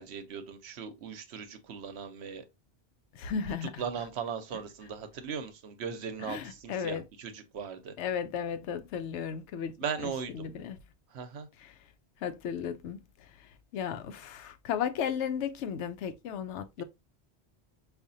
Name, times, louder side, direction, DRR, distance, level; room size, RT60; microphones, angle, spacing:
voice 1, 0.0-2.4 3.8-7.9 9.8-10.5 11.1-11.5, right 6 dB, 75° right, 0.9 m, -38 dB
voice 2, 3.1-3.8 6.2-7.0 8.0-9.7 10.0-10.8 11.6-11.7 12.2-13.0 13.4-16.8, left 7 dB, 85° left, 0.9 m, -35 dB
4.9 x 2.5 x 2.6 m
omnidirectional pair, 1.1 m